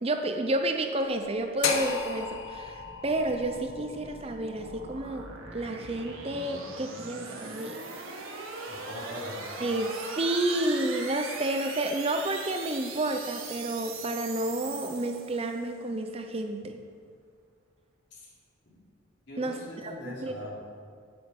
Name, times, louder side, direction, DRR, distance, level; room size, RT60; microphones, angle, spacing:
voice 1, 0.0-7.8 9.6-16.8 19.4-20.3, right 1 dB, 30° right, 5 dB, 0.6 m, -30 dB
sound 1, 1.3-15.7, right 3 dB, 75° right, 1.6 m, -41 dB
sound 2, 1.6-5.7, left 6 dB, 80° left, 1.0 m, -35 dB
voice 2, 8.6-9.4 18.1-18.2 18.6-18.8 19.3-20.5, left 1 dB, 55° left, -5 dB, 3.4 m, -41 dB
9.3 x 8.1 x 7.6 m, 2.1 s
head